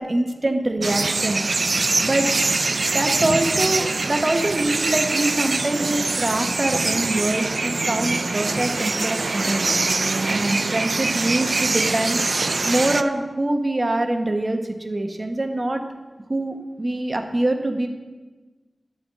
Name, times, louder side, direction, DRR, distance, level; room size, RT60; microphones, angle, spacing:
voice 1, 0.0-1.4 2.0-2.5 2.9-9.6 10.3-12.4 12.7-15.8 16.3-17.9, right 1 dB, 40° right, 5 dB, 0.9 m, -24 dB
sound 1, 0.8-13.0, right 3 dB, 60° right, 0.3 m, -23 dB
11.0 x 4.0 x 7.4 m, 1.3 s
wide cardioid pair, 65°, 0 cm